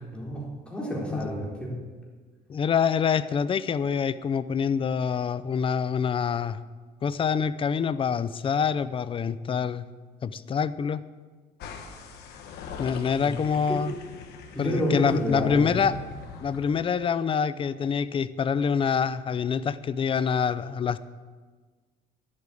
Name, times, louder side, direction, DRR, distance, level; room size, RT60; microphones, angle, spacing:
voice 1, 0.1-1.7 13.2-13.3 13.7-13.8 14.5-15.7, equal, 5° left, -4 dB, 4.1 m, -29 dB
voice 2, 2.5-6.6 7.0-9.9 10.2-11.0 12.8-13.9 14.6-16.0 16.4-21.0, left 6 dB, 30° left, 15 dB, 0.5 m, -26 dB
sound 1, 11.6-16.8, left 5 dB, 80° left, 1.4 m, -42 dB
10.5 x 8.5 x 8.3 m, 1.4 s
cardioid pair, 110°, 17 cm